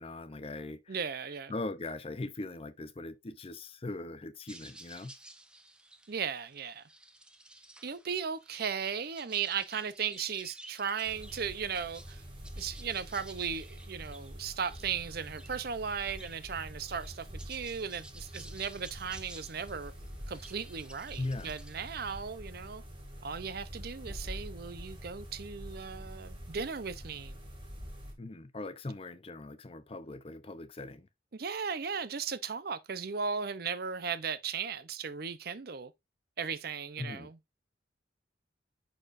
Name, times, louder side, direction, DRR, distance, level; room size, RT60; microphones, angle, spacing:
voice 1, 0.0-1.0 1.5-5.1 21.2-21.5 28.2-31.1 37.0-37.3, left 2 dB, 30° left, 0.5 m, -40 dB
voice 2, 0.9-1.5 6.1-6.8 7.8-12.2 12.6-19.9 20.3-22.8 23.2-27.4 31.3-35.9 36.4-37.4, right 6 dB, 55° right, 0.6 m, -36 dB
sound 1, 4.5-22.2, right 1 dB, 5° right, 0.7 m, -54 dB
sound 2, 11.0-28.1, equal, 25° right, 2.3 m, -46 dB
10.0 x 4.4 x 2.5 m
head